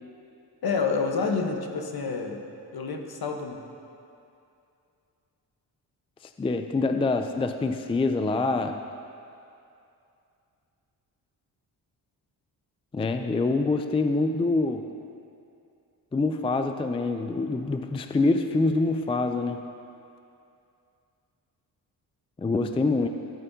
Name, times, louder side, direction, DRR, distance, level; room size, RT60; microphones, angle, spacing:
voice 1, 0.6-2.4 2.7-3.6, left 4 dB, 60° left, 3 dB, 1.2 m, -28 dB
voice 2, 6.4-8.8 12.9-14.9 16.1-19.7 22.4-23.1, left 3 dB, 15° left, 7 dB, 0.4 m, -25 dB
17.0 x 8.8 x 2.8 m, 2.6 s
cardioid pair, 75°, 42 cm